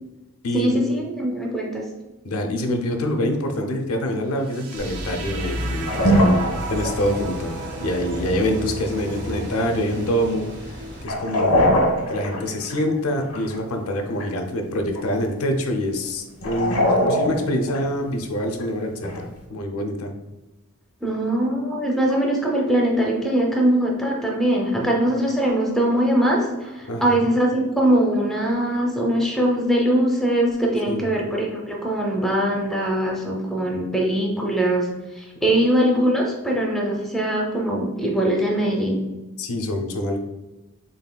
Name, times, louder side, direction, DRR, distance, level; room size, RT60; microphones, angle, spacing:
voice 1, 0.5-1.9 21.0-34.9 35.2-39.0, right 1 dB, ahead, -1 dB, 0.5 m, -21 dB
voice 2, 2.2-11.5 12.1-20.1 24.8-24.9 26.9-27.2 30.9-31.1 35.4-35.5 39.4-40.2, left 1 dB, 65° left, 4 dB, 0.6 m, -26 dB
sound 1, 4.4-12.4, right 3 dB, 80° right, 0.6 m, -37 dB
sound 2, 4.8-11.0, equal, 50° right, 0.8 m, -33 dB
sound 3, 5.4-5.5 5.8-6.9 11.0-12.9 13.3-13.8 14.2-14.4 14.8-15.4 16.0-16.1 16.3-17.8 18.6-19.2, equal, 85° left, 1.2 m, -21 dB
4.0 x 3.5 x 2.3 m, 1.1 s
head